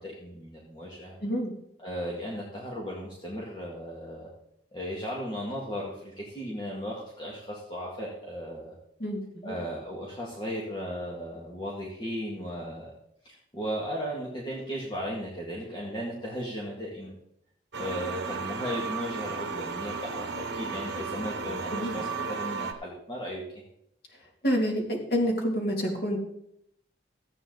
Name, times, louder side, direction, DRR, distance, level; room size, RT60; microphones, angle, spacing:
voice 1, 0.0-1.2 1.8-4.3 4.7-8.7 9.4-12.9 13.2-17.2 17.7-23.4, equal, 25° left, -4 dB, 2.1 m, -36 dB
voice 2, 1.2-1.5 9.0-9.6 21.7-22.0 24.1-26.2, equal, 60° left, 0 dB, 2.9 m, -28 dB
sound 1, 17.7-22.7, right 4 dB, 80° right, 1.1 m, -34 dB
14.5 x 8.8 x 4.0 m, 0.75 s
head